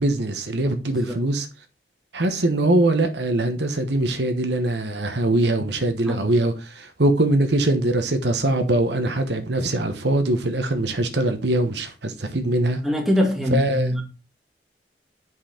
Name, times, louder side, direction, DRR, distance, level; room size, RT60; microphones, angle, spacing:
voice 1, 0.0-1.5 2.1-12.8 13.5-13.9, right 1 dB, 75° right, 1.1 m, -22 dB
voice 2, 12.8-14.0, equal, ahead, 1.8 m, -23 dB
7.8 x 5.6 x 4.3 m
head